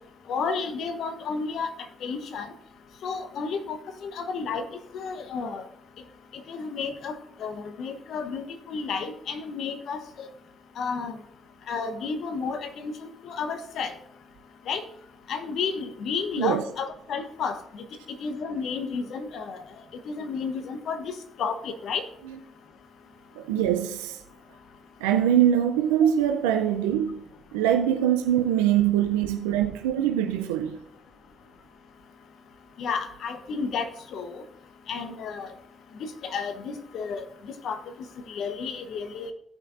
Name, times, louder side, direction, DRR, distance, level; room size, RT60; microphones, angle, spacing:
voice 1, 0.3-1.7 2.0-2.5 3.0-4.7 4.9-5.7 6.3-10.3 10.8-11.2 11.7-14.0 14.7-14.8 15.3-17.8 18.2-19.6 19.9-22.0 32.8-34.4 34.9-35.5 36.0-37.3 37.6-37.8 38.3-39.3, left 5 dB, 70° left, 1.0 m, -32 dB
voice 2, 23.4-24.2 25.0-27.2 27.5-30.8, right 10 dB, 90° right, 0.5 m, -23 dB
16.0 x 5.7 x 2.6 m
hypercardioid pair, 50°, 0 cm